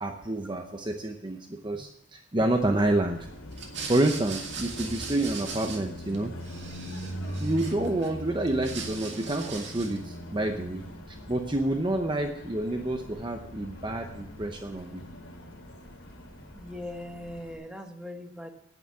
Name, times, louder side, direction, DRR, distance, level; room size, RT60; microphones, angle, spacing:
voice 1, 0.0-3.2 3.9-6.3 7.4-15.0, right 1 dB, 25° right, 4 dB, 0.7 m, -28 dB
Car passing by, 2.6-17.5, equal, 75° left, 2.7 m, -41 dB
sound 1, 3.5-6.2 6.4-8.1 8.4-10.1, right 5 dB, 60° right, 2.3 m, -40 dB
voice 2, 16.5-18.5, left 1 dB, 5° right, 4 dB, 1.1 m, -40 dB
10.5 x 9.1 x 7.0 m, 0.80 s
head